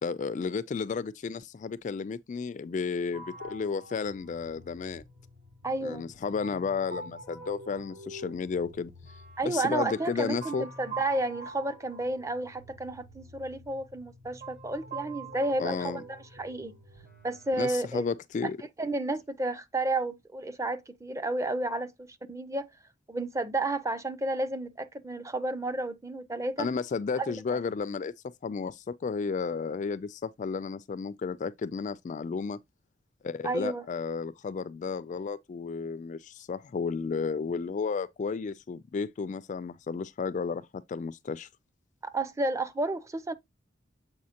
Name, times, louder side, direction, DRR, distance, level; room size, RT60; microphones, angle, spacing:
voice 1, 0.0-5.0 5.8-8.9 9.4-10.7 15.6-16.0 17.6-18.6 26.6-28.1 28.4-32.6 33.2-41.5, left 5 dB, 40° left, 0.3 m, -33 dB
sound 1, 3.1-17.8, right 2 dB, 50° right, 1.8 m, -45 dB
voice 2, 5.6-6.1 9.4-16.7 17.2-18.1 18.8-22.7 23.1-26.7 27.2-27.6 33.4-33.8 42.0-43.3, right 2 dB, 15° right, 0.5 m, -32 dB
7.4 x 4.8 x 2.8 m
head